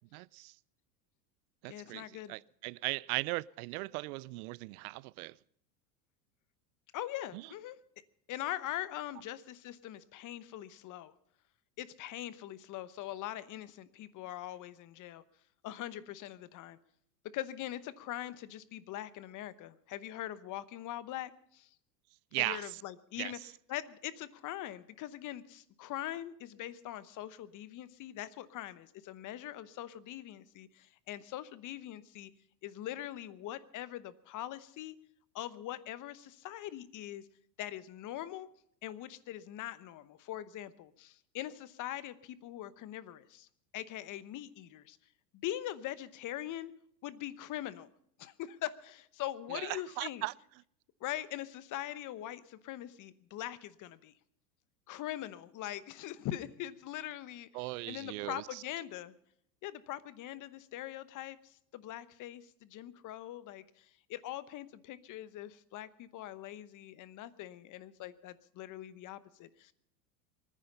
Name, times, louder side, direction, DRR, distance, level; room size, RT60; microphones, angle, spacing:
voice 1, 0.1-0.5 1.6-5.4 7.3-7.4 22.3-22.8 23.2-23.5 49.5-50.3 57.5-58.6, right 23 dB, 65° right, 0.5 m, -38 dB
voice 2, 1.7-2.3 6.9-7.8 8.3-11.1 11.8-15.2 15.6-16.8 17.3-21.7 22.4-23.4 23.7-32.3 32.6-35.0 35.3-37.3 37.6-38.5 38.8-43.5 43.7-45.0 45.3-46.7 47.0-47.9 48.2-50.2 51.0-54.1 54.9-59.1 59.6-69.7, left 13 dB, 40° left, 1.0 m, -42 dB
23.5 x 10.0 x 5.4 m
supercardioid pair, 115°, 49 cm